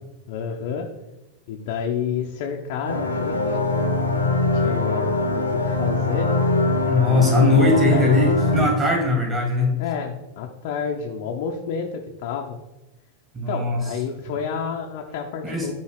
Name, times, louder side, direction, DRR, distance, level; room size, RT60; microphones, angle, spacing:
voice 1, 0.3-0.9 1.5-6.3 7.1-8.2 9.8-12.6 13.5-15.7, left 6 dB, 50° left, 2 dB, 0.6 m, -30 dB
sound 1, 2.8-8.7, left 2 dB, 85° left, 0.9 m, -22 dB
voice 2, 6.9-9.8 13.3-13.8 15.4-15.7, left 2 dB, 20° right, 0 dB, 1.9 m, -20 dB
7.5 x 2.7 x 4.8 m, 1.0 s
figure-of-eight pair, 90°, 0 cm